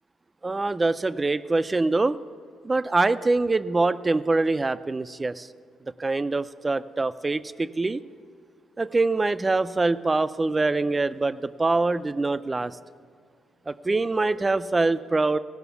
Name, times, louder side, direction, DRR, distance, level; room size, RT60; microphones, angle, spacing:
voice 1, 0.4-2.2 2.6-5.5 6.0-8.0 8.8-12.8 13.7-15.4, right 3 dB, 20° right, 13 dB, 0.4 m, -24 dB
17.0 x 6.0 x 7.0 m, 2.1 s
cardioid pair, 90°, 0 cm